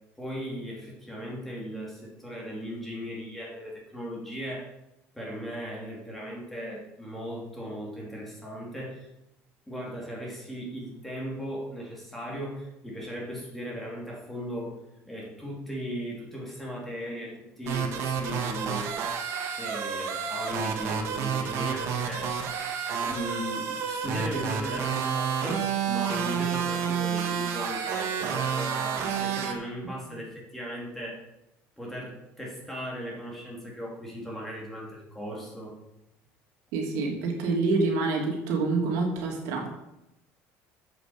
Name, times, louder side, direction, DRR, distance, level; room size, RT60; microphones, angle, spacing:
voice 1, 0.2-4.7 5.1-9.1 9.7-14.7 15.1-18.9 19.5-22.4 23.0-31.2 31.8-35.7, equal, 5° left, -3 dB, 3.0 m, -37 dB
sound 1, 17.7-29.5, right 7 dB, 50° right, 1.6 m, -30 dB
voice 2, 36.7-39.7, right 3 dB, 75° right, 1 dB, 2.7 m, -27 dB
7.9 x 7.7 x 7.3 m, 0.89 s
cardioid pair, 155°, 6 cm